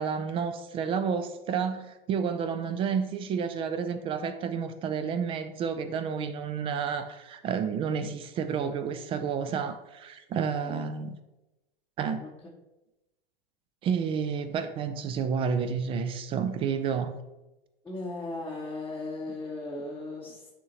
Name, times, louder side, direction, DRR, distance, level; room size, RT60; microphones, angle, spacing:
voice 1, 0.0-11.2 12.0-12.2 13.8-17.1, right 6 dB, 20° right, 0.3 m, -30 dB
voice 2, 17.8-20.5, left 2 dB, 5° left, 0.8 m, -37 dB
9.5 x 3.6 x 2.9 m
figure-of-eight pair, 95°, 29 cm